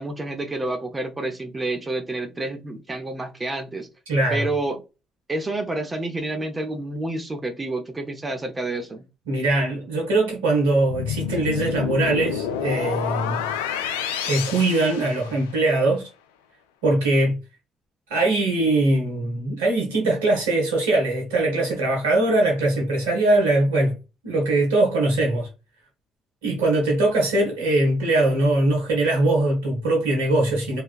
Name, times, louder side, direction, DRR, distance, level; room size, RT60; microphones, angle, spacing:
voice 1, 0.0-3.9 4.3-4.8 5.3-9.1, right 2 dB, 25° right, 0.7 m, -29 dB
voice 2, 4.1-4.5 9.3-13.5 14.2-16.0 16.8-17.4 18.1-23.9 24.2-25.5 26.4-30.8, right 2 dB, 90° right, 1.0 m, -21 dB
sound 1, 10.9-15.7, left 8 dB, 90° left, 0.3 m, -29 dB
3.2 x 2.3 x 2.4 m
hypercardioid pair, 50°, 0 cm